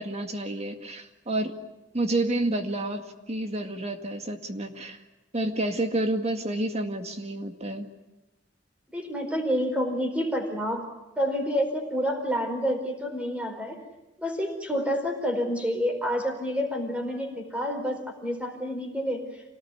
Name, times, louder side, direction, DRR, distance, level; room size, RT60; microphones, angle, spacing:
voice 1, 0.0-1.5 1.9-5.0 5.3-7.9, right 1 dB, 35° right, 6 dB, 2.0 m, -29 dB
voice 2, 8.9-10.9 11.2-13.8 14.2-19.4, equal, 5° right, 4 dB, 4.6 m, -28 dB
27.0 x 18.5 x 9.7 m, 1.0 s
head